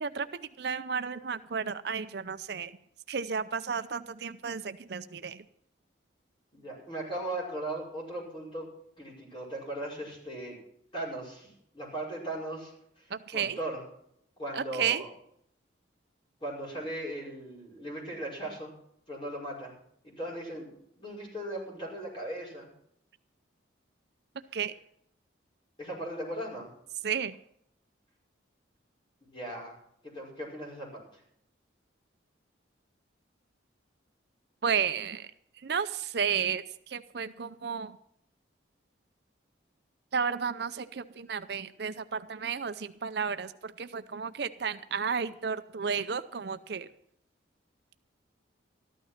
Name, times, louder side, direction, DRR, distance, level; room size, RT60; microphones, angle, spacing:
voice 1, 0.0-2.7 3.1-5.4 13.1-13.6 14.5-15.0 24.5-24.7 27.0-27.3 34.6-35.2 35.6-36.6 36.9-37.9 40.1-46.9, right 6 dB, 55° right, 11 dB, 0.5 m, -32 dB
voice 2, 6.5-8.7 9.0-10.6 10.9-13.8 14.4-15.1 16.4-18.7 19.1-19.7 20.0-22.7 25.8-26.7 29.2-29.7 30.0-31.2, right 1 dB, 25° left, -3 dB, 5.5 m, -38 dB
13.5 x 12.0 x 5.8 m, 0.72 s
head